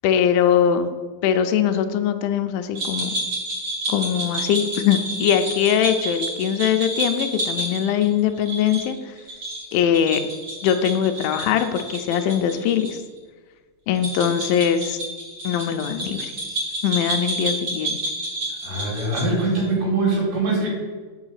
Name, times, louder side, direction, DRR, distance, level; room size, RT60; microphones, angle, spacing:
voice 1, 0.0-0.9 1.2-3.2 3.9-9.1 9.7-10.2 10.6-13.0 13.9-15.0 15.4-16.3 16.8-18.0, left 9 dB, 85° left, 8 dB, 2.0 m, -21 dB
sound 1, 2.7-12.9 13.2-13.3 13.9-19.7, right 1 dB, 40° right, 2.4 m, -29 dB
voice 2, 18.6-20.8, right 2 dB, 85° right, -3 dB, 4.0 m, -22 dB
6.1 x 4.8 x 6.4 m, 1.4 s
omnidirectional pair, 4.6 m